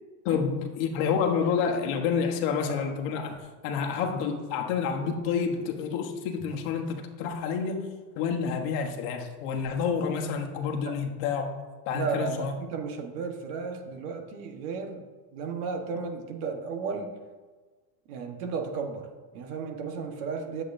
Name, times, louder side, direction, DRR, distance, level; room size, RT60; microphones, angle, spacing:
voice 1, 0.2-3.4 3.6-7.9 8.2-11.5 11.9-12.5, left 6 dB, 55° left, 3 dB, 1.2 m, -29 dB
voice 2, 11.9-15.1 15.3-17.2 18.1-20.6, right 5 dB, 70° right, 5 dB, 1.3 m, -34 dB
10.5 x 7.7 x 2.6 m, 1.4 s
cardioid pair, 165°, 45 cm